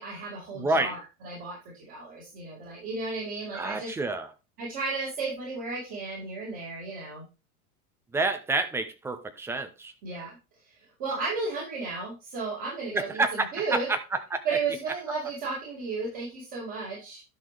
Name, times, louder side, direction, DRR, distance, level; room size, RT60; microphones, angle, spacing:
voice 1, 0.0-3.9 4.6-7.2 10.0-10.4 11.0-13.9 14.4-17.2, right 4 dB, 45° right, 4.8 m, -34 dB
voice 2, 0.5-0.9 3.5-4.3 8.1-9.9 12.9-13.5 14.3-14.4, right 2 dB, 5° right, 0.4 m, -28 dB
11.0 x 5.9 x 3.3 m
figure-of-eight pair, 90°, 45 cm